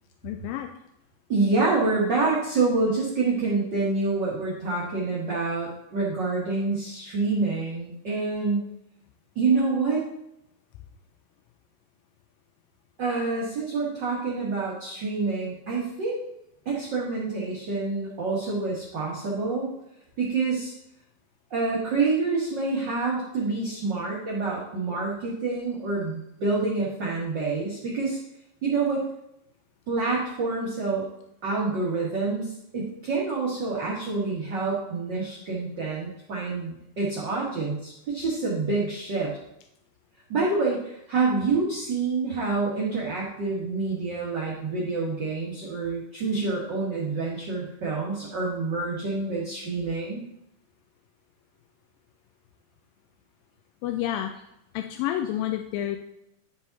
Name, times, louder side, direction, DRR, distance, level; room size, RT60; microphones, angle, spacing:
voice 1, 0.2-0.7 53.8-54.3 54.7-56.0, left 12 dB, 80° left, 4 dB, 2.2 m, -29 dB
voice 2, 1.3-8.6 9.3-10.0 13.0-16.2 16.6-19.7 20.2-20.7 21.5-28.2 28.6-29.0 29.9-31.1 31.4-39.3 40.3-50.2, right 3 dB, 60° right, -5 dB, 1.1 m, -27 dB
11.5 x 4.9 x 4.0 m, 0.81 s
omnidirectional pair, 4.4 m